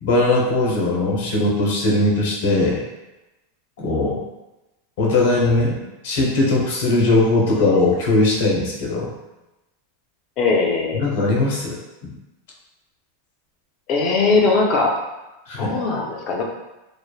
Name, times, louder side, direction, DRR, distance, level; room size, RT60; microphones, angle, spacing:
voice 1, 0.0-2.8 3.8-4.2 5.0-9.1 10.9-12.1 15.5-15.7, left 2 dB, 60° left, -2 dB, 0.7 m, -19 dB
voice 2, 10.4-11.1 13.9-15.0 15.6-16.4, left 3 dB, 30° left, 0 dB, 0.4 m, -19 dB
3.1 x 2.0 x 2.2 m, 1.0 s
supercardioid pair, 170°, 0 cm